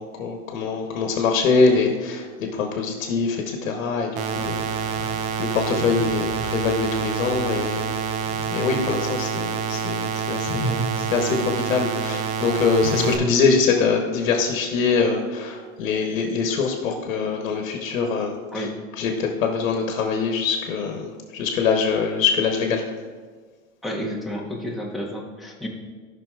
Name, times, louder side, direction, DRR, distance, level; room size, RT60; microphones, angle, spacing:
voice 1, 0.0-7.9 8.5-18.7 19.0-22.8, left 5 dB, 75° left, 3 dB, 1.1 m, -24 dB
sound 1, 4.2-13.2, right 7 dB, 45° right, 0.7 m, -27 dB
sound 2, 8.7-9.9 10.3-13.2, right 1 dB, 50° left, 1.2 m, -35 dB
voice 2, 13.0-13.4 18.5-18.7 23.8-25.7, equal, ahead, -3 dB, 1.0 m, -31 dB
12.5 x 5.8 x 2.4 m, 1.5 s
supercardioid pair, 135°, 40 cm